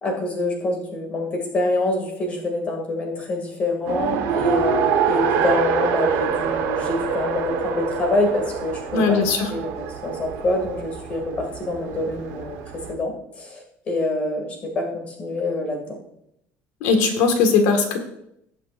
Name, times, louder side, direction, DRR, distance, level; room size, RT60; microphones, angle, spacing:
voice 1, 0.0-12.6 12.9-13.1 13.4-16.0, left 2 dB, 25° left, 2 dB, 2.4 m, -26 dB
Race car auto racing, 3.9-12.9, right 7 dB, 70° right, 1.3 m, -26 dB
voice 2, 8.9-9.5 16.8-18.0, left 4 dB, 80° left, 5 dB, 1.8 m, -19 dB
18.0 x 7.3 x 2.6 m, 0.79 s
cardioid pair, 175°, 5 cm